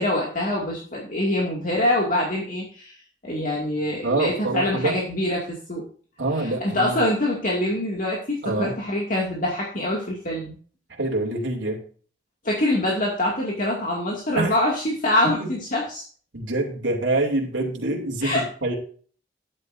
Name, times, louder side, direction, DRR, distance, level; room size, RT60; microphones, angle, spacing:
voice 1, 0.0-2.9 3.2-5.8 6.4-10.6 12.4-16.0 18.2-18.4, left 1 dB, 40° left, -3 dB, 2.3 m, -25 dB
voice 2, 4.0-5.0 6.2-7.0 8.4-8.8 10.9-11.8 14.4-14.6 15.4-15.5 16.3-18.7, right 2 dB, 70° right, -1 dB, 2.8 m, -25 dB
12.5 x 9.9 x 2.7 m, 0.43 s
head